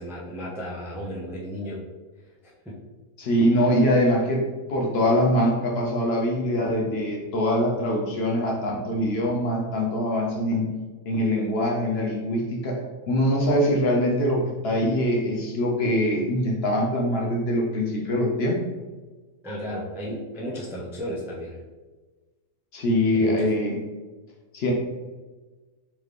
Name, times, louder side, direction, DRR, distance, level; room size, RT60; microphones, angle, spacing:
voice 1, 0.0-1.8 2.4-2.7 19.4-21.6 23.1-23.5, equal, 5° right, -5 dB, 0.4 m, -34 dB
voice 2, 3.2-4.4 4.7-10.7 11.1-12.8 13.1-18.6 22.7-23.8 24.5-24.7, equal, 55° left, -2 dB, 0.8 m, -23 dB
3.7 x 3.2 x 3.3 m, 1.3 s
omnidirectional pair, 1.4 m